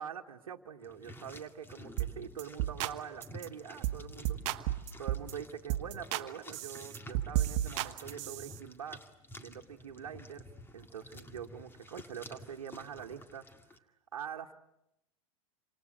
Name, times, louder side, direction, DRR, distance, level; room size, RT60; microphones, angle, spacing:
voice 1, 0.0-4.6 5.0-9.0 9.4-10.4 10.7-13.4 14.1-14.5, right 8 dB, 80° right, 3 dB, 1.5 m, -44 dB
sound 1, 0.8-13.8, left 1 dB, 10° left, 2.1 m, -51 dB
sound 2, 2.0-2.1 2.4-2.9 3.2-3.5 3.8-5.3 5.7-6.3 6.5-8.6, right 14 dB, 55° right, 1.2 m, -33 dB
28.5 x 26.5 x 7.7 m, 0.83 s
hypercardioid pair, 95°, 17 cm